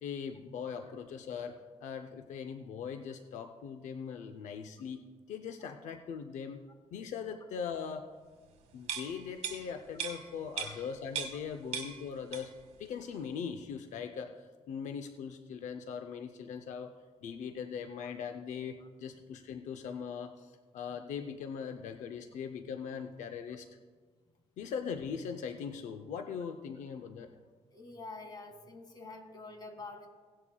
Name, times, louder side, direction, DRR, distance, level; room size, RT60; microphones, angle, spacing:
voice 1, 0.0-5.0 5.3-6.7 6.9-8.1 8.7-12.5 12.8-23.7 24.6-27.3, left 6 dB, 75° left, 7 dB, 0.6 m, -40 dB
sound 1, 8.8-11.5 11.7-12.7 13.0-13.2, right 7 dB, 65° right, 1.7 m, -39 dB
voice 2, 27.7-30.1, left 3 dB, 35° left, 4 dB, 1.9 m, -46 dB
17.5 x 11.0 x 2.3 m, 1.5 s
cardioid pair, 120°, 12 cm